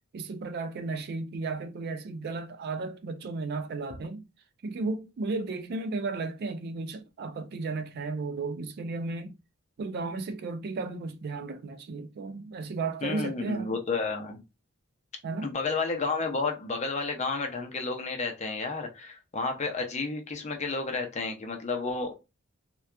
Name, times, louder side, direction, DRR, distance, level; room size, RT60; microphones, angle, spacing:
voice 1, 0.1-4.3 4.6-9.4 9.8-13.7 15.2-15.5, right 3 dB, 50° right, 0.3 m, -34 dB
voice 2, 13.0-14.4 15.4-22.1, left 4 dB, 35° left, 0.5 m, -31 dB
2.7 x 2.2 x 2.2 m
head